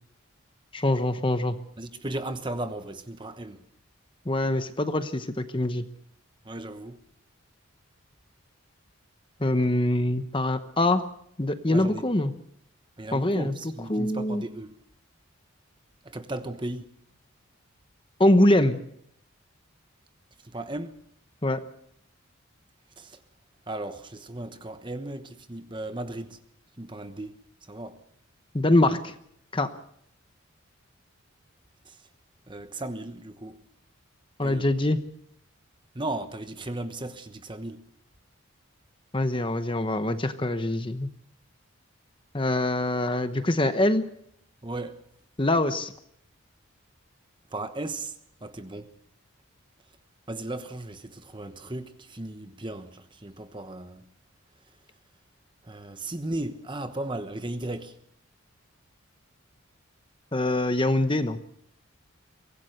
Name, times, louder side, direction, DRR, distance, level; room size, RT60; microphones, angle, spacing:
voice 1, 0.7-1.6 4.3-5.8 9.4-11.1 11.4-12.3 13.1-13.5 13.9-14.4 18.2-18.8 21.4-21.6 28.5-29.1 29.5-29.7 34.4-35.0 39.1-41.1 42.3-44.1 45.4-45.9 60.3-61.4, left 1 dB, 25° left, 1.0 m, -24 dB
voice 2, 1.8-3.6 6.4-7.0 11.7-12.1 13.0-14.7 16.0-16.9 20.4-21.0 23.0-23.2 23.7-26.4 26.8-27.3 27.7-28.0 31.8-32.0 32.5-33.6 34.4-34.7 35.9-37.8 44.6-45.0 47.5-48.1 48.4-48.9 50.3-54.0 55.6-58.0, right 2 dB, 20° right, 1.1 m, -36 dB
23.5 x 17.0 x 6.7 m
head